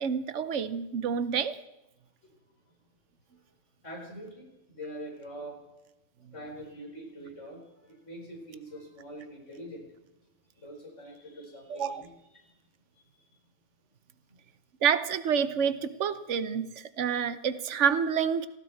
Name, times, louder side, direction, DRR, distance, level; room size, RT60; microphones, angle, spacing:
voice 1, 0.0-1.6 11.7-12.0 14.8-18.5, right 7 dB, 75° right, 13 dB, 1.1 m, -28 dB
voice 2, 3.8-5.6 6.3-9.9 10.6-12.5 12.9-13.4 14.3-14.4, equal, 75° left, 0 dB, 4.7 m, -44 dB
19.0 x 15.0 x 4.6 m, 0.98 s
omnidirectional pair, 1.3 m